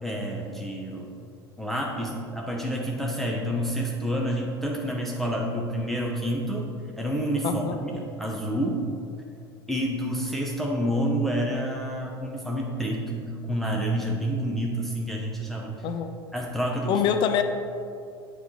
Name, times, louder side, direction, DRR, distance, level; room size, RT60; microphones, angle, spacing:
voice 1, 0.0-1.1 1.6-6.7 7.0-8.8 9.7-15.7 16.3-17.0, equal, ahead, -3 dB, 0.7 m, -28 dB
voice 2, 7.4-7.8 15.8-16.1 16.9-17.4, left 8 dB, 40° left, 8 dB, 0.4 m, -24 dB
9.1 x 3.2 x 4.2 m, 2.4 s
figure-of-eight pair, 75°, 13 cm